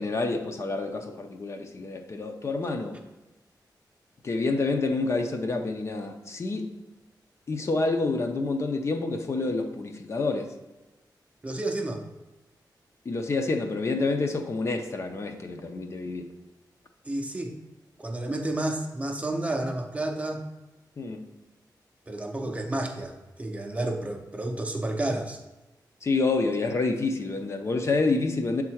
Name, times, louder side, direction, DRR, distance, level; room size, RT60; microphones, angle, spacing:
voice 1, 0.0-3.0 4.2-6.7 7.5-10.5 13.1-16.3 21.0-21.3 26.0-28.6, left 3 dB, 40° left, 5 dB, 0.5 m, -28 dB
voice 2, 11.4-12.0 17.0-17.6 18.0-20.4 22.1-25.4, right 1 dB, 20° right, 3 dB, 0.5 m, -31 dB
7.1 x 3.6 x 4.4 m, 1.1 s
wide cardioid pair, 175°, 8 cm